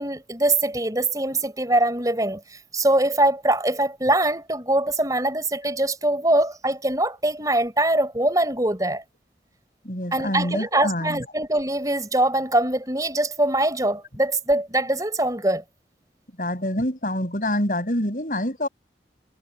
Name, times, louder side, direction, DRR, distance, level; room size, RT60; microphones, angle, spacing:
voice 1, 0.0-2.4 2.7-9.0 10.1-15.6, right 1 dB, 20° right, 5.0 m, -23 dB
voice 2, 9.8-11.2 16.4-18.7, left 1 dB, 50° left, 7.0 m, -26 dB
head